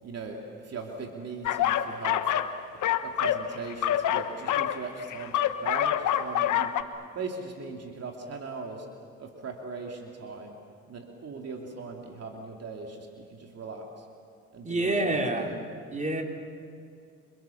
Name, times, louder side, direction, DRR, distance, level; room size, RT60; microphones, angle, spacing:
voice 1, 0.0-2.3 3.0-6.7 7.1-8.9 9.2-10.6 10.9-14.1 14.5-15.6, right 4 dB, 55° right, 1 dB, 3.0 m, -39 dB
sound 1, 1.4-2.5 2.8-6.8, left 11 dB, 80° left, 1.3 m, -26 dB
voice 2, 14.6-15.5 15.9-16.2, right 2 dB, 25° right, 2 dB, 3.8 m, -27 dB
28.5 x 27.0 x 7.2 m, 2.3 s
cardioid pair, 90°, 30 cm